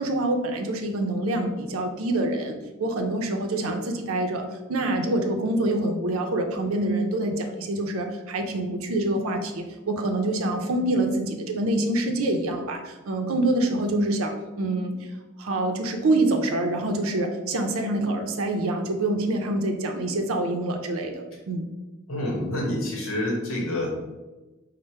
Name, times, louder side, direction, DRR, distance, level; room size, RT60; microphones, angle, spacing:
voice 1, 0.0-15.1 15.4-21.6, right 1 dB, 85° right, 4 dB, 0.5 m, -26 dB
voice 2, 22.1-23.9, left 1 dB, 75° left, 0 dB, 0.9 m, -27 dB
4.5 x 2.1 x 4.2 m, 1.1 s
head